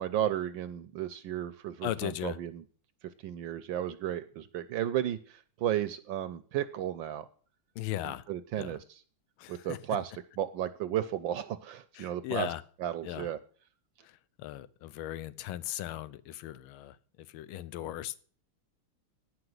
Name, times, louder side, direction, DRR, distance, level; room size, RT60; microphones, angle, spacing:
voice 1, 0.0-2.6 3.2-7.3 8.3-9.0 9.5-12.5 12.8-13.4, right 11 dB, 75° right, 11 dB, 1.2 m, -34 dB
voice 2, 1.8-2.4 7.8-8.2 8.6-8.8 9.4-9.8 11.9-12.6 13.0-13.3 14.0-14.1 14.4-18.2, left 13 dB, 75° left, 17 dB, 1.5 m, -37 dB
10.0 x 5.9 x 7.8 m, 0.44 s
omnidirectional pair, 2.4 m